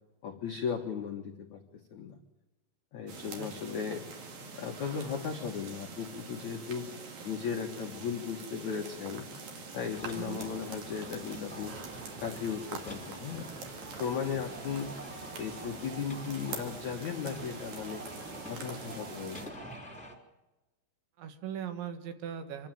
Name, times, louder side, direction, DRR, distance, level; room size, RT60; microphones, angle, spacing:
voice 1, 0.2-1.6 1.9-2.2 2.9-4.0 4.6-6.9 7.2-9.3 9.7-11.7 12.2-13.5 14.0-14.9 15.4-18.1 18.4-19.6, left 7 dB, 80° left, 3 dB, 1.7 m, -36 dB
sound 1, 3.1-19.5, right 4 dB, 50° right, 3.9 m, -45 dB
voice 2, 3.3-3.8 10.1-10.5 21.2-22.7, right 8 dB, 70° right, 7 dB, 3.7 m, -40 dB
sound 2, 9.9-20.1, right 1 dB, ahead, 2.0 m, -46 dB
26.0 x 12.5 x 9.1 m, 1.1 s
omnidirectional pair, 5.7 m